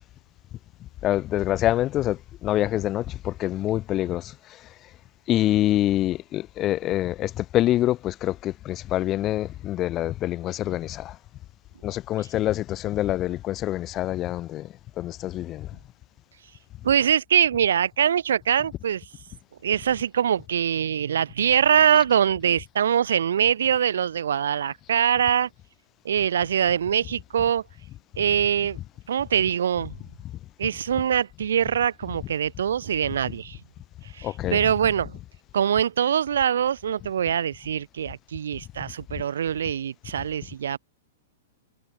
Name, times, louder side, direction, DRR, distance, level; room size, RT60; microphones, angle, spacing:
voice 1, 1.0-4.3 5.3-11.1 11.8-14.7 15.0-15.7 34.2-34.6, left 14 dB, 30° left, 3.5 m, -25 dB
voice 2, 16.8-19.1 19.6-25.5 26.0-27.6 28.2-28.8 29.1-30.0 30.6-33.6 34.1-35.2 35.5-40.8, right 9 dB, 80° right, 5.0 m, -23 dB
hypercardioid pair, 130°, 0 cm